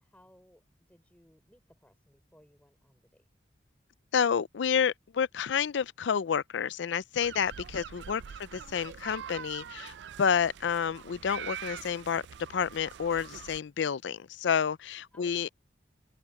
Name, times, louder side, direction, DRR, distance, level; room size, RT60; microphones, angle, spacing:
voice 1, 0.0-3.3 8.2-8.4 15.1-15.5, equal, 10° left, 4.9 m, -62 dB
voice 2, 4.1-12.2 12.5-15.5, left 7 dB, 80° left, 0.4 m, -29 dB
sound 1, 7.1-13.6, right 8 dB, 70° right, 0.4 m, -44 dB
open air
head